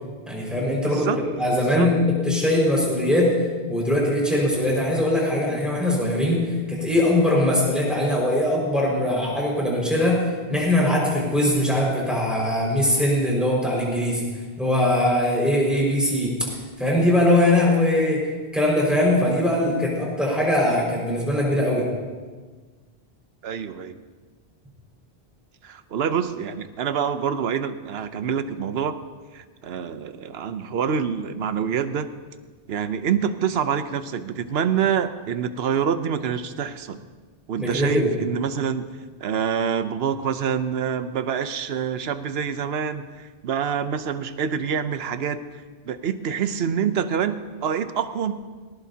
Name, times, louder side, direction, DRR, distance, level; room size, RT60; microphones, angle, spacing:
voice 1, 0.3-3.3 3.7-14.2 14.6-16.4 16.8-18.3 18.5-21.8 37.6-38.1, left 1 dB, ahead, -4 dB, 5.1 m, -21 dB
voice 2, 0.8-1.2 1.5-1.9 23.4-24.0 25.6-29.0 29.3-32.1 32.7-37.0 37.5-38.9 39.2-45.4 45.9-48.3, right 7 dB, 80° right, 11 dB, 1.0 m, -26 dB
19.0 x 18.5 x 2.8 m, 1.4 s
omnidirectional pair, 1.0 m